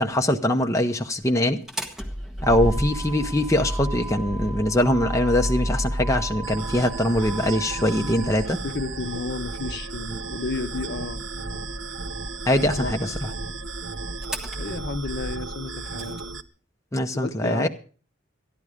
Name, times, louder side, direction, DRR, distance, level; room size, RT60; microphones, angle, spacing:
voice 1, 0.0-1.6 2.4-8.6 12.5-13.1 16.9-17.7, left 1 dB, 15° left, 0.7 m, -22 dB
Motor vehicle (road), 1.5-16.2, equal, ahead, 1.3 m, -32 dB
sound 1, 6.4-16.4, right 4 dB, 80° right, 0.8 m, -36 dB
voice 2, 7.9-8.3 8.6-11.7 12.8-13.3 14.6-16.3 17.1-17.7, left 3 dB, 55° left, 0.8 m, -33 dB
13.5 x 11.0 x 5.0 m
head